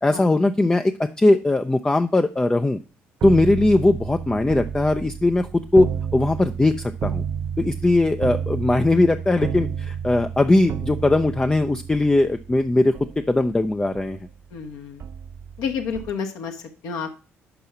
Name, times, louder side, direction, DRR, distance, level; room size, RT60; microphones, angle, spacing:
voice 1, 0.0-2.8 3.2-7.2 7.6-14.2, left 2 dB, 10° left, 7 dB, 0.4 m, -20 dB
sound 1, 3.2-14.6 15.0-16.1, right 8 dB, 45° right, 0.4 m, -31 dB
voice 2, 14.5-15.1 15.6-17.2, left 6 dB, 60° left, 4 dB, 0.9 m, -30 dB
5.9 x 5.5 x 5.4 m, 0.35 s
figure-of-eight pair, 45°, 7 cm